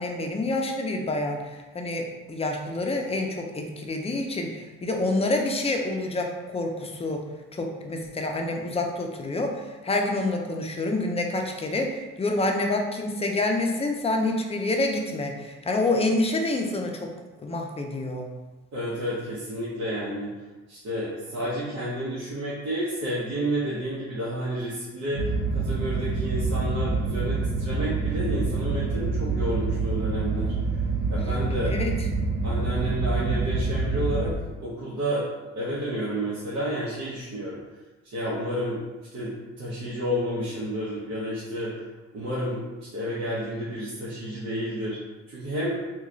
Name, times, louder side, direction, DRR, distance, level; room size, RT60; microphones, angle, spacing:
voice 1, 0.0-7.2 7.5-17.1 17.4-18.3 31.7-31.9, left 2 dB, 20° left, 2 dB, 0.5 m, -27 dB
voice 2, 18.7-20.3 20.7-30.5 31.1-31.7 32.4-34.3 34.6-35.3 35.5-37.6 38.1-38.8 39.1-41.7 42.1-45.0 45.3-45.8, equal, 55° right, -9 dB, 1.0 m, -30 dB
sound 1, 25.1-34.3, right 4 dB, 80° right, 0.6 m, -26 dB
2.9 x 2.3 x 3.8 m, 1.2 s
cardioid pair, 90°, 30 cm